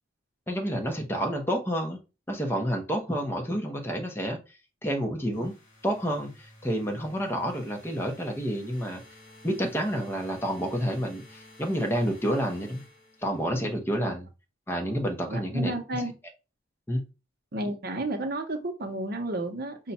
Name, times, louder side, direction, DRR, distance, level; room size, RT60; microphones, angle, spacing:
voice 1, 0.5-2.0 2.3-4.4 4.8-5.5 5.8-9.0 9.4-12.8 13.2-14.3 14.7-15.7 16.9-17.0, equal, 10° left, 0.8 m, -29 dB
sound 1, 5.3-13.6, left 1 dB, 45° left, 1.7 m, -53 dB
voice 2, 15.3-16.1 17.5-19.9, right 1 dB, 55° right, 0.8 m, -32 dB
5.3 x 2.2 x 4.1 m
head